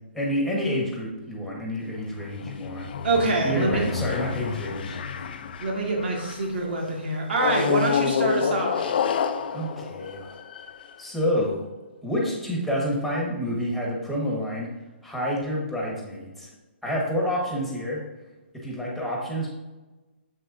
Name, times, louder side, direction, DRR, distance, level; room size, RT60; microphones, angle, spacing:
voice 1, 0.1-2.9 3.4-5.2 9.5-10.3 11.0-11.7 12.0-14.7 15.0-16.5 16.8-18.0 18.6-19.5, equal, ahead, -3 dB, 1.5 m, -28 dB
sound 1, 1.9-6.6 7.4-11.0, left 7 dB, 55° left, 0.5 m, -29 dB
voice 2, 3.0-3.9 5.6-8.9, right 2 dB, 65° right, 0 dB, 2.0 m, -25 dB
7.1 x 6.3 x 2.7 m, 1.1 s
hypercardioid pair, 150°, 6 cm